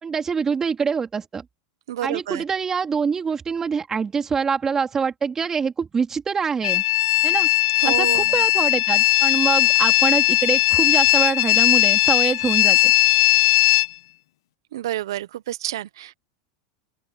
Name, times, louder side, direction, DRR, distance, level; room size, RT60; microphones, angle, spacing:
voice 1, 0.0-1.4 2.0-6.8 7.2-7.5 7.8-12.9, right 6 dB, 20° right, 3.1 m, -25 dB
voice 2, 1.9-2.4 7.8-8.2 14.7-16.1, right 13 dB, 80° right, 0.9 m, -29 dB
sound 1, 6.6-13.9, left 18 dB, 75° left, 1.0 m, -18 dB
open air
supercardioid pair, 115°, 2 cm